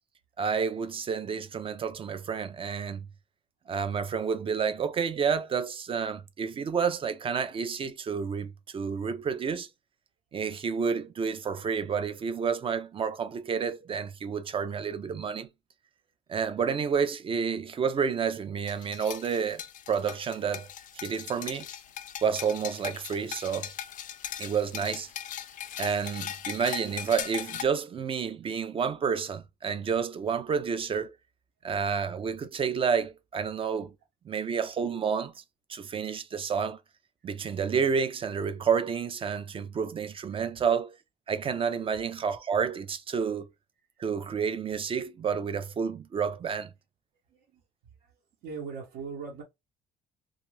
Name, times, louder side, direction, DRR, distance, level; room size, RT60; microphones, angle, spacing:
voice 1, 0.4-3.1 3.7-9.7 10.3-15.5 16.3-19.6 19.9-20.7 20.9-21.7 22.2-23.7 24.4-25.1 25.8-31.1 31.6-33.9 34.3-35.3 35.7-36.8 37.2-41.0 41.3-43.5 44.0-46.7, right 6 dB, 30° right, 0.4 m, -30 dB
sound 1, 18.7-27.6, left 10 dB, 50° left, 0.4 m, -39 dB
voice 2, 47.3-47.6 48.0-49.4, right 5 dB, 80° right, 1.0 m, -40 dB
2.5 x 2.4 x 3.1 m
cardioid pair, 110°, 17 cm